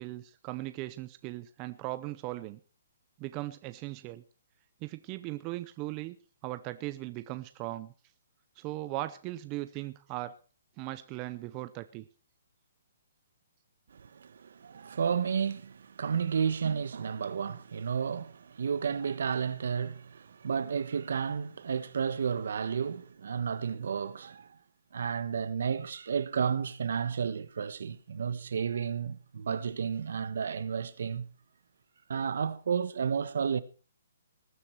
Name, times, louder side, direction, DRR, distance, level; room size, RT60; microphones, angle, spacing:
voice 1, 0.0-2.6 3.2-4.2 4.8-6.2 6.4-7.9 8.6-10.3 10.8-12.0, right 17 dB, 20° right, 0.6 m, -38 dB
voice 2, 13.9-24.5 24.9-31.3 32.1-33.6, right 7 dB, 65° right, 1.1 m, -32 dB
19.5 x 9.7 x 4.5 m
hypercardioid pair, 170°, 0 cm